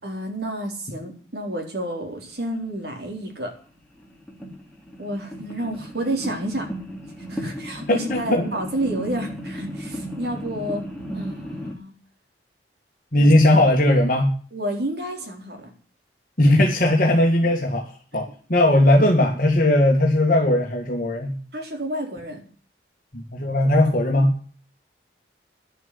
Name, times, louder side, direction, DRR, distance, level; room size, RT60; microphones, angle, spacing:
voice 1, 0.0-3.5 5.0-6.7 7.3-10.9 11.1-11.9 13.1-13.3 14.5-15.7 18.1-18.3 21.5-22.5, right 1 dB, 60° right, 2 dB, 4.1 m, -30 dB
sound 1, 3.1-3.2 3.9-11.7, equal, 5° left, 2.8 m, -34 dB
voice 2, 7.9-8.4 13.1-14.3 16.4-17.9 18.1-21.3 23.1-24.3, left 1 dB, 45° left, 0 dB, 2.0 m, -18 dB
11.0 x 7.8 x 9.8 m, 0.42 s
head